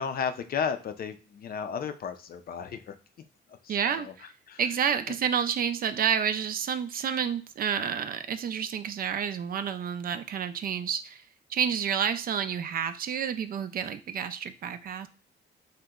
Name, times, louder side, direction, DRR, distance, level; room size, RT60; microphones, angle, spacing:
voice 1, 0.0-2.9 3.6-4.1 4.5-4.6, left 7 dB, 50° left, 8 dB, 0.4 m, -33 dB
voice 2, 3.7-4.3 4.6-11.2 11.5-15.1, right 8 dB, 50° right, 11 dB, 0.4 m, -29 dB
2.9 x 2.1 x 3.6 m, 0.36 s
cardioid pair, 90°, 20 cm